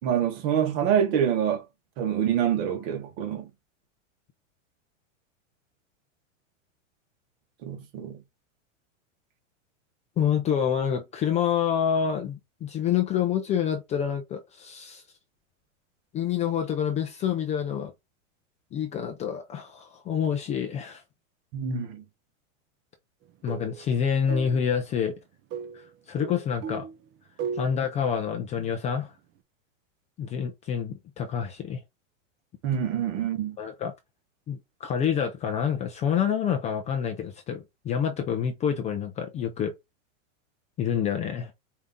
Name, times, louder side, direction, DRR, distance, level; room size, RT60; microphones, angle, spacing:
voice 1, 0.0-1.6 2.0-3.5 7.6-8.2 21.5-22.0 32.6-33.6, right 9 dB, 50° right, 1.6 m, -26 dB
voice 2, 10.2-15.0 16.1-17.9 18.7-21.0 23.4-25.1 25.7-26.9 27.5-29.1 30.2-31.8 33.6-33.9 34.5-39.7 40.8-41.5, left 8 dB, 20° left, 0.4 m, -27 dB
sound 1, 23.3-23.9 24.3-24.7 25.5-27.0 27.4-27.9, right 7 dB, 30° right, 0.6 m, -36 dB
4.9 x 2.8 x 3.6 m
supercardioid pair, 140°, 39 cm